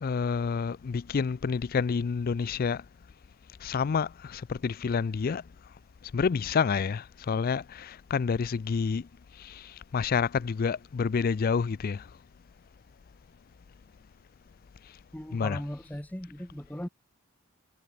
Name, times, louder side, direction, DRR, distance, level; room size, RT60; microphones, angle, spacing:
voice 1, 0.0-2.8 3.6-5.4 6.1-9.1 9.4-12.1 15.3-15.6, left 5 dB, 45° left, 0.4 m, -28 dB
voice 2, 15.1-16.9, equal, 5° left, 1.0 m, -38 dB
head